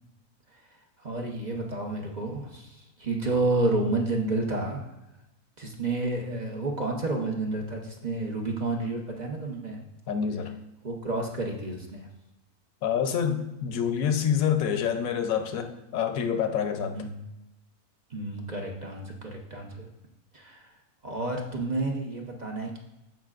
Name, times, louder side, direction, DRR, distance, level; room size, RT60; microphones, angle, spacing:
voice 1, 1.0-4.9 5.6-9.8 10.8-12.1 16.9-17.2 18.1-19.9 20.3-20.7 21.0-22.8, right 2 dB, 35° right, 1 dB, 0.9 m, -30 dB
voice 2, 10.1-10.5 12.8-17.0, left 8 dB, 65° left, 7 dB, 1.1 m, -27 dB
15.0 x 5.4 x 2.5 m, 0.94 s
omnidirectional pair, 1.6 m